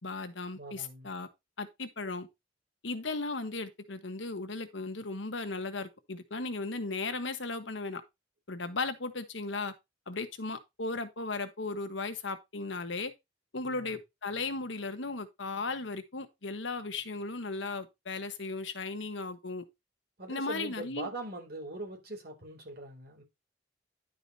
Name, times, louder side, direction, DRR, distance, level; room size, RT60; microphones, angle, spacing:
voice 1, 0.0-1.3 1.6-2.3 2.8-8.0 8.5-9.7 10.1-13.1 13.5-19.6 20.3-21.1, left 3 dB, 80° left, 1.4 m, -36 dB
voice 2, 0.5-1.1 13.6-14.0 20.2-23.2, right 1 dB, 55° right, 4.3 m, -42 dB
11.0 x 5.0 x 4.2 m
head